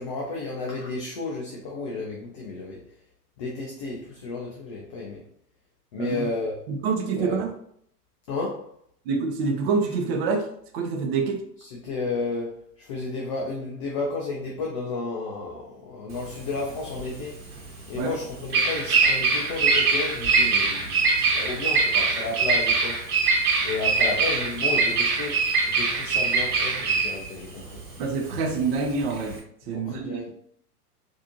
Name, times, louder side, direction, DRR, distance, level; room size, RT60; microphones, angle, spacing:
voice 1, 0.0-2.8 3.4-5.2 5.9-6.5 7.2-7.4 8.3-8.6 11.8-12.5 12.9-17.3 17.9-23.0 23.6-27.6 29.7-30.2, left 3 dB, 25° left, -2 dB, 0.3 m, -32 dB
voice 2, 6.0-6.3 6.7-7.5 9.1-10.5 10.7-11.4 17.9-18.2 28.0-29.4 29.7-30.3, right 4 dB, 40° right, 4 dB, 0.7 m, -26 dB
Bird vocalization bird call bird song, 16.1-29.4, right 4 dB, 65° right, 1.1 m, -23 dB
4.0 x 2.7 x 2.7 m, 0.67 s
figure-of-eight pair, 100°, 48 cm